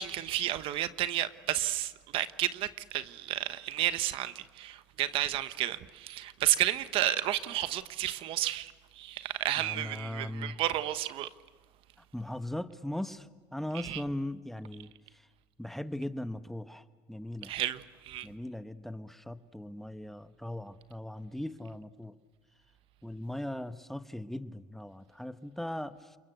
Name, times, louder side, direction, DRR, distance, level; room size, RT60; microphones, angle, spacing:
voice 1, 0.0-11.3 13.7-14.0 17.4-18.3, right 13 dB, 65° right, 1.1 m, -32 dB
voice 2, 9.6-10.5 12.1-15.2 15.6-17.5 18.2-22.1 23.0-26.2, left 1 dB, 5° left, 1.1 m, -39 dB
29.0 x 22.0 x 8.1 m
supercardioid pair, 90°, 10 cm